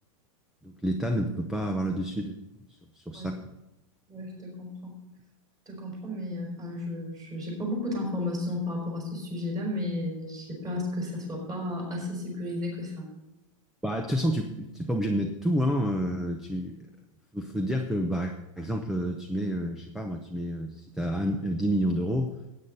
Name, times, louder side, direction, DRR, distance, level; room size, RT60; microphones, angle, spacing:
voice 1, 0.6-2.4 2.7-3.4 13.8-16.9 17.3-22.3, equal, ahead, 4 dB, 0.7 m, -29 dB
voice 2, 4.1-4.9 5.7-13.1, left 1 dB, 20° right, -1 dB, 5.1 m, -33 dB
15.5 x 9.4 x 4.0 m, 0.95 s
supercardioid pair, 160°, 18 cm